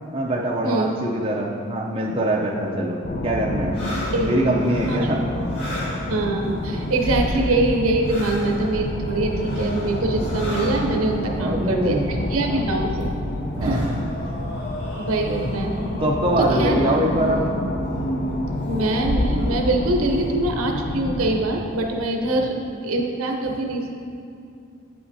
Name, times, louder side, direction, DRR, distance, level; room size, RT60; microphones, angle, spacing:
voice 1, 0.1-3.0 3.2-3.8 4.2-5.2 11.2-12.1 12.5-12.6 13.6-13.9 16.0-17.4 22.3-22.4, right 1 dB, 25° right, -1 dB, 0.4 m, -23 dB
sound 1, 3.0-21.4, left 1 dB, 40° left, 0.4 m, -28 dB
sound 2, 3.7-7.7 8.0-11.2 12.2-12.3 12.7-17.4 17.9-18.2 18.6-18.8 19.3-20.1, left 1 dB, 85° left, 1.4 m, -37 dB
voice 2, 4.1-4.5 4.9-5.0 6.1-12.0 12.3-13.1 13.6-13.9 15.0-15.8 16.4-17.0 18.7-22.6 22.8-23.9, right 2 dB, 80° right, 2 dB, 0.7 m, -23 dB
8.6 x 5.7 x 2.7 m, 2.4 s
head